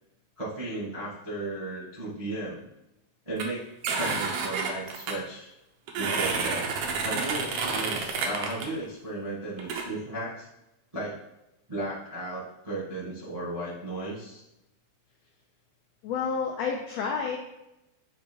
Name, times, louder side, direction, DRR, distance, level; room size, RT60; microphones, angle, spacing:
voice 1, 0.4-2.6 3.2-3.7 4.0-5.5 6.0-6.7 7.0-10.5 10.9-11.2 11.7-14.4, right 2 dB, 20° right, -8 dB, 0.8 m, -35 dB
sound 1, 3.4-3.5 3.8-5.1 5.9-8.7 9.6-9.8, right 4 dB, 75° right, 1.4 m, -29 dB
voice 2, 16.0-17.4, left 5 dB, 80° left, 1 dB, 1.5 m, -29 dB
7.3 x 3.0 x 4.4 m, 0.89 s
omnidirectional pair, 3.6 m